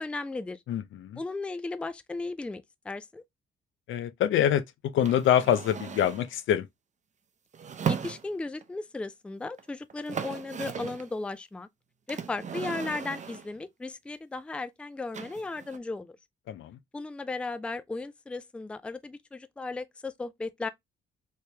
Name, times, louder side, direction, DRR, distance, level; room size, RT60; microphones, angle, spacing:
voice 1, 0.0-0.6 1.1-3.2 7.9-11.7 12.1-16.2 16.9-20.7, left 3 dB, 5° left, 0.3 m, -36 dB
voice 2, 0.7-1.2 3.9-6.7 16.5-16.8, left 10 dB, 75° left, 0.6 m, -25 dB
sound 1, 5.0-6.3 7.5-8.6 9.6-9.7 9.9-11.1 12.1-13.6 15.1-15.8, right 7 dB, 35° right, 0.6 m, -36 dB
3.2 x 2.9 x 3.2 m
cardioid pair, 90°, 20 cm